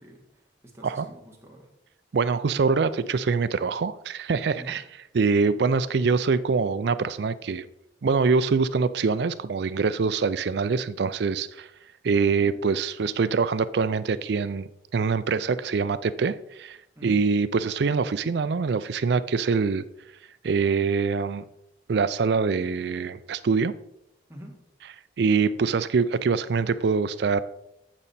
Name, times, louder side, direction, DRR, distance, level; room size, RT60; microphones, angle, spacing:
voice 1, 0.0-1.7 4.5-4.7 12.4-12.6 16.9-17.2 24.3-24.5, right 1 dB, 15° right, 1.5 m, -45 dB
voice 2, 2.1-4.8 5.1-7.7 8.0-11.7 12.0-16.8 17.0-19.8 20.4-21.4 21.9-23.7 25.2-27.4, right 5 dB, 65° right, 0.4 m, -24 dB
8.9 x 5.2 x 4.2 m
head